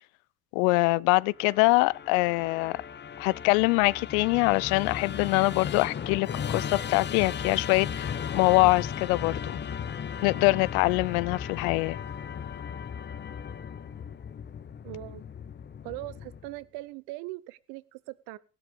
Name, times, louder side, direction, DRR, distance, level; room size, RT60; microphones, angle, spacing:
voice 1, 0.5-2.8 3.2-9.6 10.2-12.0, left 24 dB, 75° left, 0.5 m, -24 dB
Musical instrument, 1.3-16.6, left 7 dB, 25° left, 0.7 m, -36 dB
voice 2, 14.8-15.2 15.8-18.4, right 18 dB, 70° right, 0.8 m, -40 dB
16.0 x 11.5 x 3.6 m
supercardioid pair, 80°, 41 cm